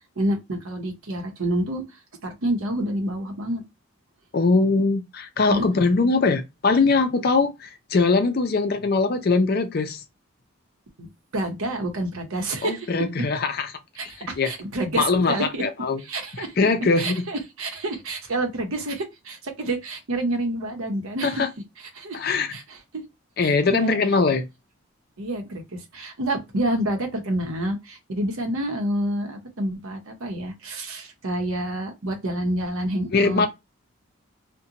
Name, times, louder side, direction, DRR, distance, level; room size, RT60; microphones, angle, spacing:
voice 1, 0.0-1.8 2.2-3.6 5.5-5.6 6.0-6.1 11.0-11.1 11.3-12.9 14.0-15.6 16.0-16.5 17.0-21.4 21.8-22.2 22.5-23.0 23.4-23.9 25.2-33.5, right 1 dB, 80° right, 0.8 m, -28 dB
voice 2, 4.3-10.0 12.6-13.7 14.2-14.5 15.0-16.0 16.3-17.2 21.2-21.5 22.1-22.5 23.4-24.4 33.1-33.5, left 4 dB, 45° left, 0.4 m, -21 dB
2.5 x 2.2 x 2.7 m
head